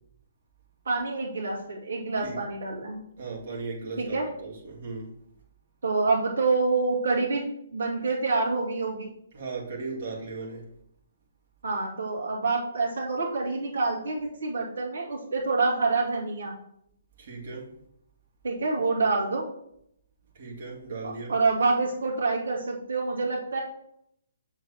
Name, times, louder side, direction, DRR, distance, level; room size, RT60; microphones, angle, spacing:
voice 1, 0.9-3.1 4.0-4.3 5.8-9.1 11.6-16.5 18.4-19.5 21.0-23.6, right 3 dB, 60° right, -3 dB, 2.3 m, -27 dB
voice 2, 3.2-5.2 9.3-10.7 17.2-17.8 20.3-21.4, right 3 dB, 45° right, -4 dB, 2.2 m, -37 dB
6.9 x 6.8 x 2.9 m, 0.74 s
figure-of-eight pair, 130°, 0 cm